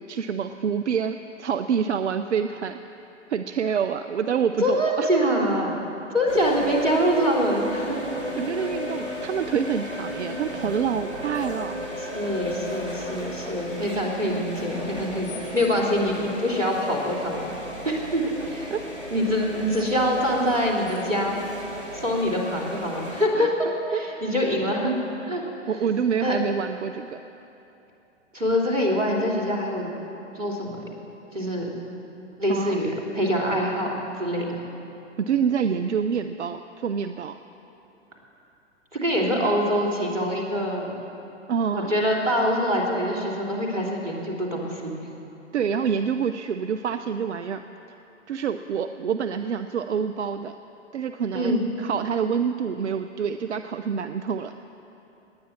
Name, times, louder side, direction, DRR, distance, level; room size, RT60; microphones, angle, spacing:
voice 1, 0.0-2.8 3.3-5.1 6.3-6.7 8.4-11.9 18.7-18.8 23.3-23.5 23.9-24.2 25.7-27.2 32.5-32.8 35.2-37.4 41.5-41.9 45.5-47.6 48.3-50.6 50.9-54.5, right 7 dB, 65° right, 9 dB, 0.6 m, -27 dB
voice 2, 4.6-5.7 6.1-8.1 8.6-8.7 12.0-17.5 17.8-18.7 19.1-21.4 21.9-23.5 23.9-24.9 25.3-25.4 26.2-26.4 28.3-29.9 30.4-30.8 31.3-31.7 32.4-34.5 38.9-40.9 41.7-45.1 51.3-51.7, equal, 85° right, -2 dB, 3.5 m, -25 dB
sound 1, 6.3-23.2, left 1 dB, 85° left, 3.2 m, -35 dB
19.5 x 9.5 x 7.5 m, 2.9 s
figure-of-eight pair, 115°, 37 cm